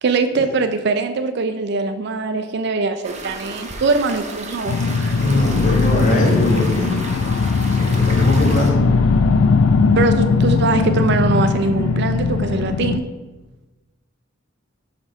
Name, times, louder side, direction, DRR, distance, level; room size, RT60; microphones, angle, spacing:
voice 1, 0.0-5.2 10.0-13.0, right 4 dB, 55° right, 8 dB, 0.4 m, -22 dB
sound 1, 3.0-8.7, right 2 dB, 35° right, 0.8 m, -33 dB
sound 2, 4.7-13.0, left 4 dB, 80° left, 0.4 m, -18 dB
voice 2, 5.2-7.0 7.6-8.8, left 1 dB, 40° left, -1 dB, 1.5 m, -21 dB
7.2 x 4.3 x 5.1 m, 1.2 s
head